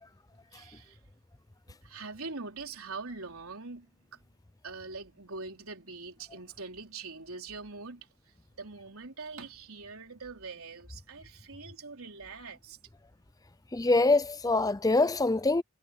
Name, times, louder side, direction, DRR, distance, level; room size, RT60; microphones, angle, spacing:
voice 1, 0.5-1.0 1.8-4.2 4.6-8.1 8.6-12.8, right 4 dB, 80° right, 4.0 m, -43 dB
voice 2, 13.7-15.6, left 2 dB, 15° left, 0.6 m, -24 dB
head